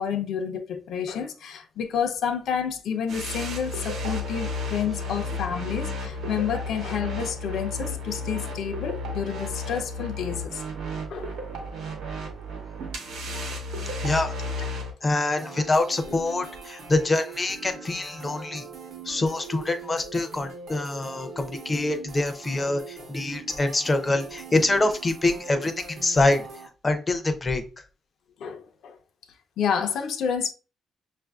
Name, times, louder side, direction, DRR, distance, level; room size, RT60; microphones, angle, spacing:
voice 1, 0.0-10.6 11.1-11.6 22.6-22.7 23.0-23.1 28.4-29.0 29.6-30.5, left 7 dB, 70° left, 0.5 m, -29 dB
sound 1, 3.1-14.9, left 2 dB, 85° right, 0.9 m, -33 dB
voice 2, 14.0-14.3 15.0-18.7 19.1-26.4 26.8-27.6, left 2 dB, 20° left, 0.5 m, -25 dB
sound 2, 15.4-26.7, right 5 dB, 55° right, 0.7 m, -42 dB
6.0 x 2.4 x 2.3 m
cardioid pair, 165°, 0 cm